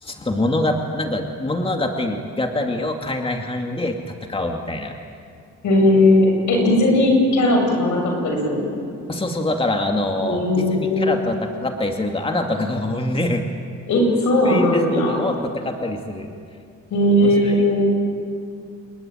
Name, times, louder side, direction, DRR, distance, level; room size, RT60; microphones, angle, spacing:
voice 1, 0.0-4.9 9.1-13.5 14.4-16.3 17.2-17.7, left 1 dB, 20° left, 3 dB, 2.4 m, -25 dB
voice 2, 5.6-8.7 10.2-11.1 13.9-15.2 16.9-18.0, left 1 dB, 75° left, 2 dB, 7.9 m, -17 dB
28.0 x 22.0 x 9.3 m, 2.3 s
cardioid pair, 90°, 30 cm